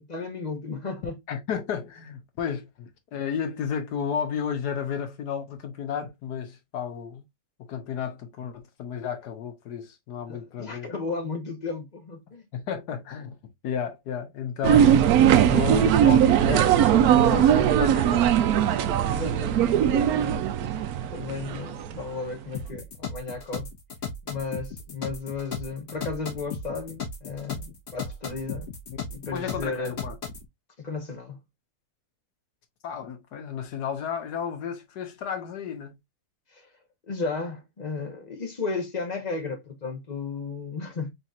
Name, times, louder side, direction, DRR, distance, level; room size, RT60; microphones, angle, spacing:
voice 1, 0.0-1.2 10.3-12.4 19.0-20.5 21.1-23.7 24.2-28.7 29.1-30.0 30.8-31.4 36.5-36.7 37.1-41.1, left 4 dB, 30° left, 1.1 m, -34 dB
voice 2, 1.3-7.2 7.7-10.9 12.5-13.3 13.6-15.1 15.5-18.3 18.7-18.9 29.3-30.1 32.8-35.9, left 7 dB, 70° left, 1.5 m, -32 dB
sound 1, 14.6-22.1, right 10 dB, 70° right, 1.0 m, -20 dB
sound 2, 22.5-30.5, left 4 dB, 45° left, 1.6 m, -36 dB
4.2 x 4.1 x 2.4 m
omnidirectional pair, 1.8 m